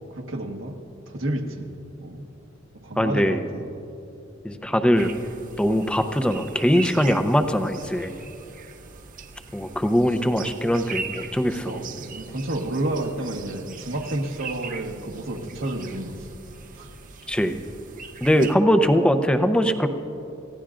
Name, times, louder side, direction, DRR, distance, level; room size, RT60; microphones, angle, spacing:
voice 1, 0.1-0.8 1.1-1.7 2.0-2.3 2.8-3.7 11.6-16.3 16.7-16.9, right 1 dB, 80° right, 2 dB, 1.4 m, -30 dB
voice 2, 3.0-3.4 4.4-5.1 5.6-8.1 9.5-11.8 17.3-17.6 18.2-19.9, equal, 5° left, 8 dB, 0.6 m, -21 dB
sound 1, 4.9-18.5, right 5 dB, 45° right, 0.7 m, -40 dB
27.5 x 16.0 x 2.5 m, 2.8 s
head